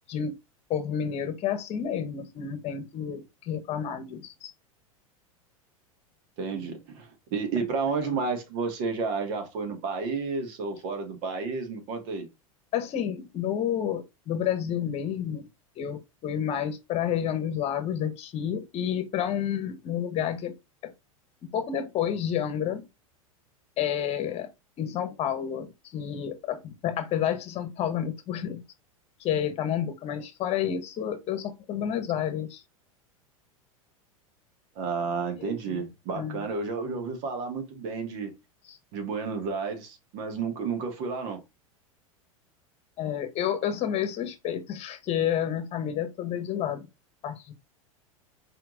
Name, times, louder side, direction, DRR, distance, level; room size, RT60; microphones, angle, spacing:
voice 1, 0.7-4.5 6.5-6.7 12.7-15.5 15.8-20.5 20.8-20.9 21.4-22.8 23.8-24.5 24.8-28.6 29.2-32.6 35.4-35.9 36.1-36.4 38.7-38.8 43.0-46.9 47.2-47.5, left 9 dB, 35° left, 1.2 m, -30 dB
voice 2, 6.4-12.3 34.8-38.3 38.9-41.4, right 4 dB, 50° right, 1.8 m, -31 dB
4.6 x 4.5 x 2.5 m
figure-of-eight pair, 90°, 18 cm